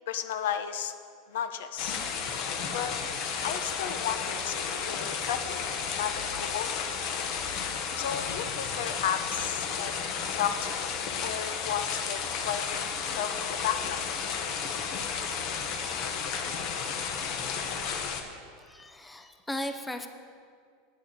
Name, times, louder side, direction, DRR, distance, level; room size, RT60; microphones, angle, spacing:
voice 1, 0.1-0.9 1.3-2.0 2.7-2.9 3.4-5.7 5.9-6.8 8.0-9.9 10.3-12.2 12.5-14.0, left 9 dB, 75° left, 10 dB, 0.9 m, -33 dB
sound 1, 1.8-18.2, left 6 dB, 40° left, 1.0 m, -33 dB
voice 2, 18.6-20.1, left 1 dB, 5° left, 7 dB, 0.5 m, -36 dB
9.2 x 6.7 x 8.9 m, 2.2 s
supercardioid pair, 170°, 0 cm